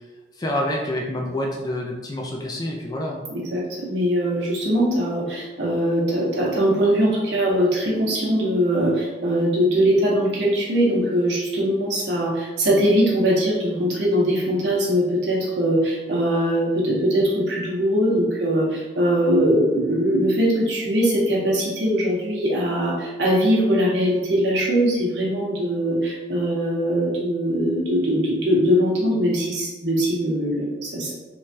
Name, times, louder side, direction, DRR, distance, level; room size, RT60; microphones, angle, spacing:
voice 1, 0.4-3.2, left 1 dB, 20° left, -1 dB, 0.3 m, -27 dB
voice 2, 3.3-31.1, equal, 70° right, -4 dB, 0.8 m, -21 dB
3.1 x 2.2 x 2.6 m, 1.2 s
head